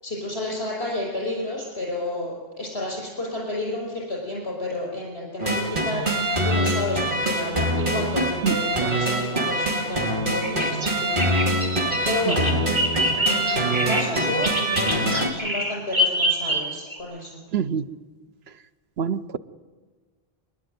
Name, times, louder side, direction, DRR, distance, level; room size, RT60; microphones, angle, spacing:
voice 1, 0.0-12.5 13.1-14.9 15.3-17.4, left 1 dB, 80° left, 6.2 m, -31 dB
sound 1, 5.4-15.3, right 1 dB, 55° right, 3.0 m, -24 dB
Bird vocalization bird call bird song, 10.4-17.0, equal, 25° right, 3.0 m, -26 dB
voice 2, 17.5-17.8 19.0-19.4, right 7 dB, 80° right, 1.1 m, -25 dB
27.0 x 11.0 x 9.4 m
omnidirectional pair, 1.0 m